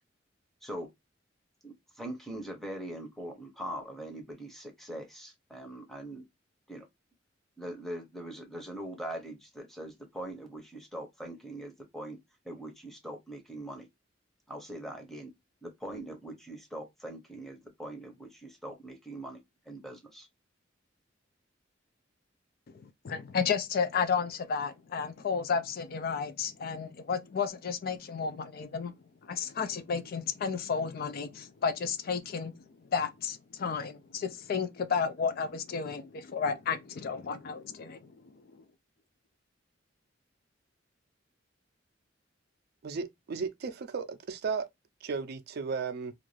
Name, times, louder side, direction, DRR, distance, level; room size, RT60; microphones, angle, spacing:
voice 1, 1.6-6.2 6.7-6.9 7.6-12.2 12.4-13.9 14.5-15.3 15.6-20.3, right 1 dB, ahead, 0.7 m, -42 dB
voice 2, 22.8-29.0 29.2-32.6 32.9-38.0 38.5-38.6, left 6 dB, 50° left, 0.4 m, -32 dB
voice 3, 42.8-44.7 45.0-46.1, right 5 dB, 55° right, 0.4 m, -35 dB
2.5 x 2.3 x 3.1 m
head